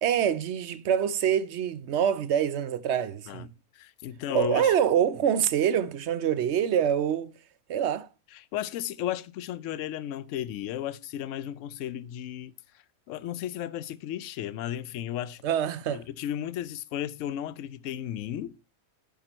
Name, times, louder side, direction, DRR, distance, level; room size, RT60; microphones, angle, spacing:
voice 1, 0.0-3.5 4.3-7.3 7.7-8.1 15.4-16.0, right 9 dB, 60° right, 0.8 m, -25 dB
voice 2, 3.7-4.7 8.5-12.5 13.1-15.4 15.9-18.6, left 11 dB, 70° left, 0.9 m, -34 dB
10.0 x 4.7 x 4.3 m
omnidirectional pair, 1.5 m